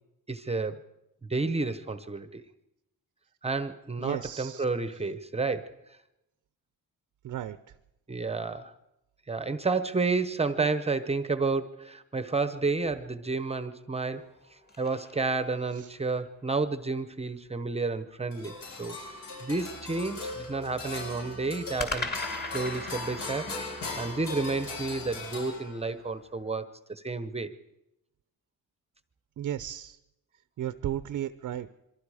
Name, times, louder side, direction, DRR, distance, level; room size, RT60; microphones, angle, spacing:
voice 1, 0.3-0.8 1.3-2.4 3.4-5.7 8.1-8.7 9.3-14.3 14.8-19.0 19.4-22.1 22.5-23.5 24.0-27.5, right 3 dB, 15° right, 11 dB, 0.9 m, -30 dB
voice 2, 4.0-4.6 7.2-7.6 10.6-10.7 15.8-15.9 29.4-30.0 30.6-31.7, right 11 dB, 55° right, 13 dB, 0.7 m, -34 dB
sound 1, 14.1-16.0 21.8-26.1, left 2 dB, 25° left, 2.5 m, -40 dB
sound 2, 18.3-26.0, left 3 dB, 75° left, 7.8 m, -39 dB
sound 3, 19.5-25.4, left 1 dB, 50° left, 7.1 m, -53 dB
27.0 x 24.0 x 4.9 m, 0.88 s
wide cardioid pair, 150°, 36 cm